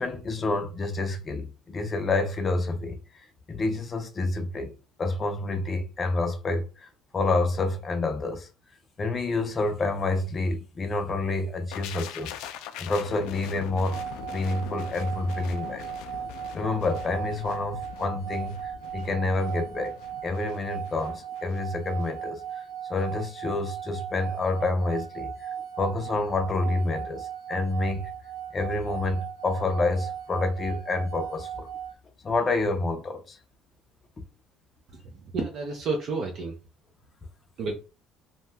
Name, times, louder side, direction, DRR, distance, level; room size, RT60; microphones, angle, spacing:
voice 1, 0.0-3.0 3.5-4.7 5.0-6.9 7.1-8.5 9.0-12.3 12.8-14.0 14.3-15.8 16.5-19.9 20.2-22.6 22.9-25.5 25.8-28.1 28.5-31.7 32.2-33.4, left 2 dB, 20° left, 0.5 m, -28 dB
sound 1, 11.7-21.6 21.9-22.1, left 10 dB, 85° left, 0.3 m, -42 dB
sound 2, 13.9-31.9, right 9 dB, 85° right, 0.7 m, -37 dB
voice 2, 34.9-36.6 37.6-37.7, right 3 dB, 45° right, 0.5 m, -31 dB
2.7 x 2.2 x 3.3 m
cardioid pair, 170°, 0 cm